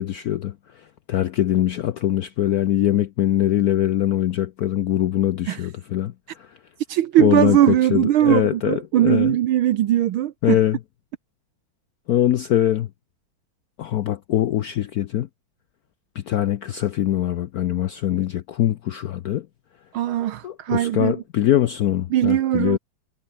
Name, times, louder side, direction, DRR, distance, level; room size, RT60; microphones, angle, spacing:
voice 1, 0.0-6.6 7.2-9.4 10.4-10.8 12.1-12.9 13.8-15.3 16.1-19.5 20.4-22.8, left 12 dB, 75° left, 0.8 m, -22 dB
voice 2, 6.9-10.6 19.9-21.1 22.1-22.8, right 12 dB, 80° right, 1.7 m, -20 dB
omnidirectional pair, 2.3 m